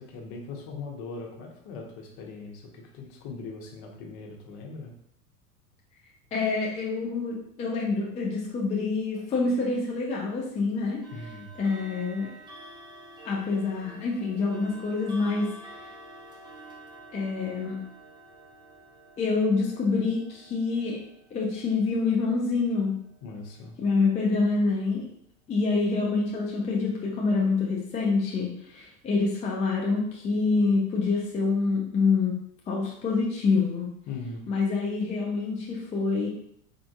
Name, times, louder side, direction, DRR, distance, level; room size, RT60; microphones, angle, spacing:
voice 1, 0.0-4.9 11.1-11.6 23.2-23.8 34.1-34.5, left 4 dB, 50° left, 0 dB, 0.9 m, -40 dB
voice 2, 6.3-11.0 11.6-12.3 13.2-15.5 17.1-17.8 19.2-21.0 21.3-23.0 23.8-25.1 25.5-32.4 32.7-33.9 34.5-36.3, left 4 dB, 15° left, -3 dB, 0.4 m, -26 dB
sound 1, 9.1-9.3 11.0-23.9, right 2 dB, 10° right, 0.9 m, -49 dB
3.6 x 2.5 x 2.4 m, 0.69 s
hypercardioid pair, 90°, 46 cm